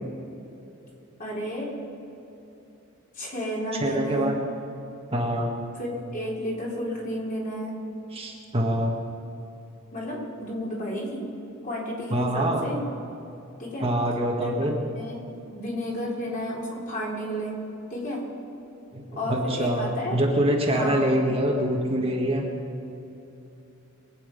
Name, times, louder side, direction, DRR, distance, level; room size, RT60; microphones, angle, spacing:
voice 1, 1.2-1.7 3.2-4.3 5.8-7.7 9.9-11.2 11.6-12.8 13.6-13.9 14.4-14.6 14.9-15.2 15.5-17.5 17.9-18.2 19.2-20.2 20.7-21.0, equal, 40° left, -4 dB, 4.0 m, -31 dB
voice 2, 3.8-4.4 5.1-5.5 8.1-9.0 12.1-12.7 13.8-14.8 18.9-22.4, right 1 dB, 30° right, -1 dB, 1.7 m, -25 dB
23.0 x 9.4 x 5.4 m, 2.9 s
head